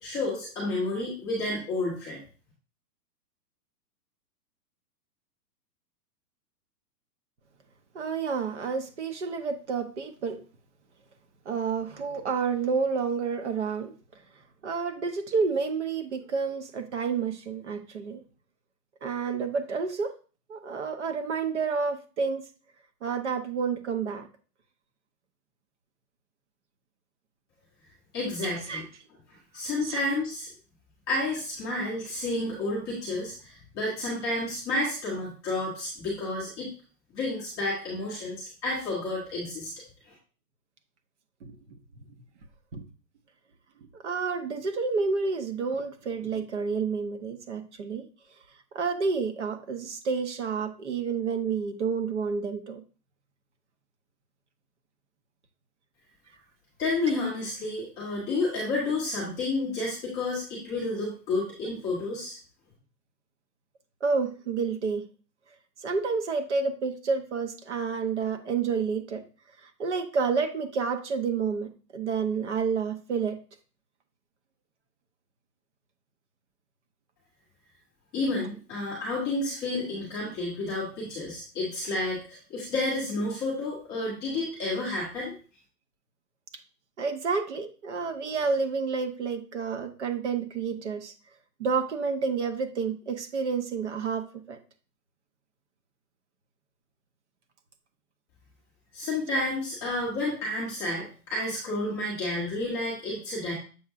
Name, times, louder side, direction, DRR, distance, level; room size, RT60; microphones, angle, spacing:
voice 1, 0.0-2.2 28.1-28.8 29.5-30.5 31.1-36.7 37.1-39.7 40.1-40.2 56.8-62.4 78.1-85.3 98.9-103.5, left 2 dB, 10° left, 0.7 m, -30 dB
voice 2, 7.9-10.4 11.5-13.9 14.6-18.2 19.0-20.1 20.5-22.4 23.0-24.3 28.4-28.8 29.8-30.0 41.4-41.5 42.7-42.8 43.9-48.1 48.7-52.8 57.1-57.2 64.0-65.0 65.8-69.2 69.6-73.4 87.0-91.1 91.6-94.6, right 5 dB, 45° right, 0.8 m, -29 dB
7.1 x 5.7 x 2.5 m
hypercardioid pair, 170°, 50 cm